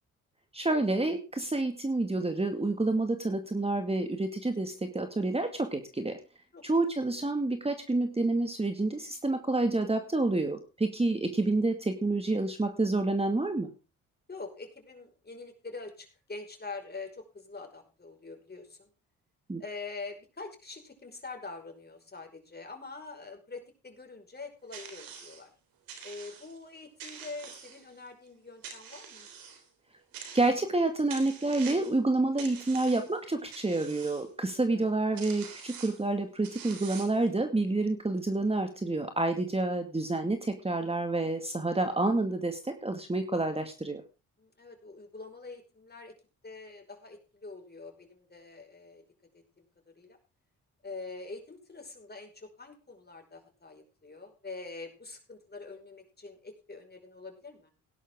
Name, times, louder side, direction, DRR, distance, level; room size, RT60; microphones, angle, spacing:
voice 1, 0.5-6.2 6.6-13.7 19.5-19.6 30.3-44.0, right 2 dB, 15° right, 6 dB, 2.1 m, -28 dB
voice 2, 6.5-6.9 14.3-18.9 19.6-25.5 26.0-29.3 34.7-34.8 44.4-46.1 46.4-49.0 49.3-50.2 50.8-57.7, left 3 dB, 30° left, 4 dB, 5.4 m, -45 dB
sound 1, 24.7-25.4 25.9-26.6 27.0-28.1 28.6-29.6 30.1-30.8 31.1-32.0 32.4-33.2 33.5-34.2 34.9-35.0 35.2-36.0 36.4-37.3, right 6 dB, 85° right, 3.5 m, -45 dB
17.5 x 11.0 x 3.7 m, 0.31 s
supercardioid pair, 60°, 34 cm